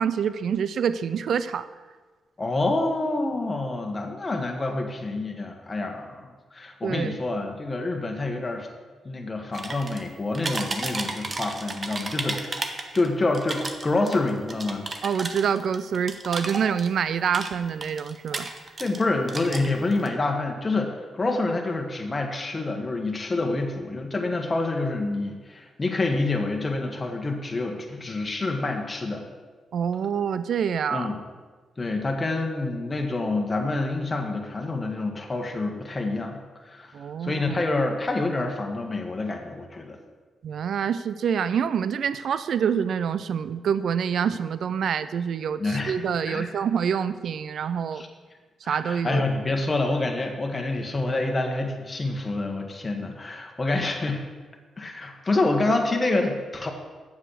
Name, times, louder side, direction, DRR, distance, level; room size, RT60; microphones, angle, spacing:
voice 1, 0.0-1.6 6.8-7.2 15.0-18.5 29.7-31.1 36.9-37.6 40.4-48.0 48.7-49.2, right 7 dB, 70° right, 14 dB, 0.5 m, -26 dB
voice 2, 2.4-8.7 9.0-12.7 12.9-14.9 18.8-29.2 30.9-31.2 31.8-36.9 37.2-40.0 45.6-46.0 46.3-46.5 47.9-48.1 48.6-54.2 54.8-56.7, left 2 dB, 30° left, 2 dB, 1.5 m, -27 dB
sound 1, 9.5-10.1 10.3-13.1 13.3-17.0 17.3-19.0 19.3-20.1, right 3 dB, 40° right, 1.1 m, -33 dB
7.5 x 7.3 x 6.5 m, 1.4 s
cardioid pair, 65°, 0 cm